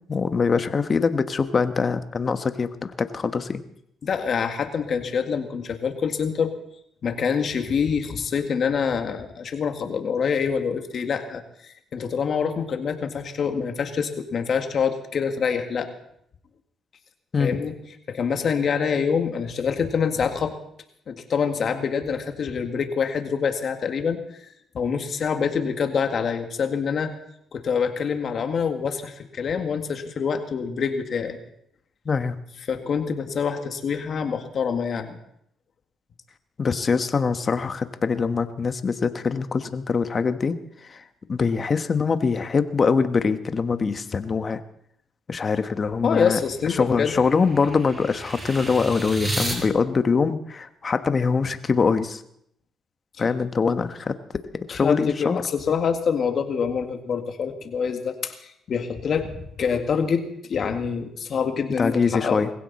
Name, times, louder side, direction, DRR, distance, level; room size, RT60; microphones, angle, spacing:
voice 1, 0.1-3.6 17.3-17.6 32.0-32.4 36.6-41.0 41.3-44.6 45.3-46.4 46.7-52.2 53.2-54.2 54.5-55.4 61.8-62.5, left 5 dB, 40° left, 10 dB, 1.2 m, -23 dB
voice 2, 4.0-6.5 7.0-15.9 17.4-17.8 18.1-20.5 21.1-24.2 24.7-27.1 27.5-31.4 32.7-35.2 46.0-47.2 54.7-62.5, left 6 dB, 55° left, 6 dB, 2.0 m, -26 dB
sound 1, 46.0-49.6, right 1 dB, 20° right, 5.8 m, -33 dB
21.0 x 16.0 x 4.2 m, 0.72 s
cardioid pair, 90°, 0 cm